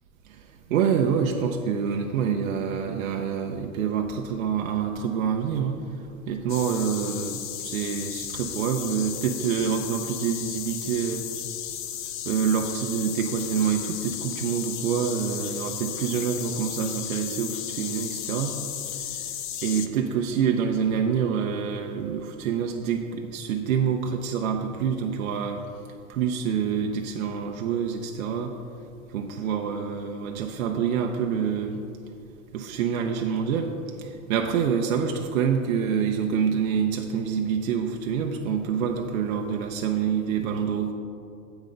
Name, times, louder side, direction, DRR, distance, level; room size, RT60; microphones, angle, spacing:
voice 1, 0.7-5.8 6.3-11.3 12.2-18.5 19.6-25.6 26.1-28.5 29.1-31.8 32.5-33.7 34.0-40.9, right 7 dB, 85° right, 3 dB, 0.8 m, -26 dB
sound 1, 6.5-19.9, left 10 dB, 40° left, 0.4 m, -35 dB
8.0 x 6.2 x 5.1 m, 2.5 s
supercardioid pair, 160°, 40 cm